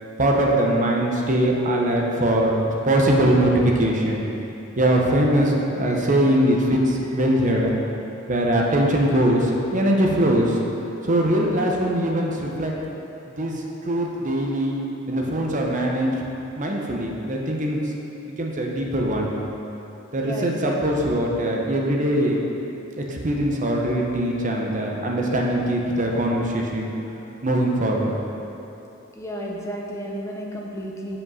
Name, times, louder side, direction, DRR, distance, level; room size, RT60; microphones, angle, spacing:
voice 1, 0.2-2.6 2.8-4.3 4.8-7.7 8.3-10.6 11.0-12.8 13.4-13.5 13.8-14.7 15.1-16.1 16.6-17.8 18.4-19.3 20.1-22.4 23.0-26.9 27.4-28.1, right 1 dB, 40° right, -1 dB, 1.0 m, -21 dB
voice 2, 7.3-7.7 20.2-21.1 29.2-31.2, equal, 15° left, -1 dB, 0.9 m, -33 dB
7.3 x 5.5 x 5.6 m, 3.0 s
head